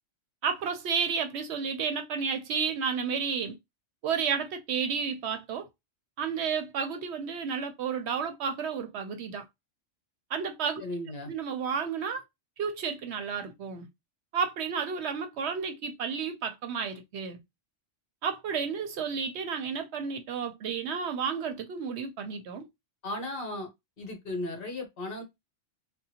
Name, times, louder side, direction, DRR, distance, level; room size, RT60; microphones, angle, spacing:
voice 1, 0.4-3.6 4.0-5.7 6.2-9.4 10.3-10.8 11.3-12.2 12.6-13.9 14.3-17.4 18.2-22.7, right 6 dB, 70° right, 0.8 m, -31 dB
voice 2, 10.8-11.3 23.0-23.7 24.0-25.2, left 1 dB, 50° left, 1.1 m, -35 dB
3.6 x 2.2 x 2.8 m
omnidirectional pair, 1.3 m